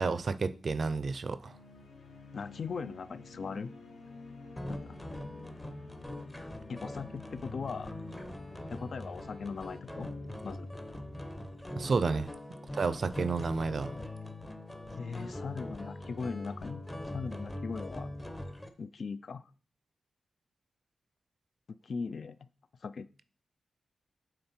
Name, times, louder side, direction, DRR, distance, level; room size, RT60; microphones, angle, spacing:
voice 1, 0.0-1.6 11.8-12.3 12.7-13.9, right 4 dB, 45° right, 0.4 m, -31 dB
sound 1, 1.3-11.4, left 3 dB, 75° left, 1.6 m, -52 dB
voice 2, 2.3-3.7 4.7-5.0 6.7-7.9 8.7-10.1 10.4-10.7 15.0-16.8 17.1-18.1 18.8-19.5 21.8-22.5 22.8-23.1, left 5 dB, 50° left, 0.3 m, -39 dB
sound 2, 4.6-18.7, left 1 dB, 10° left, 0.7 m, -42 dB
9.0 x 3.8 x 4.3 m
wide cardioid pair, 165°, 0 cm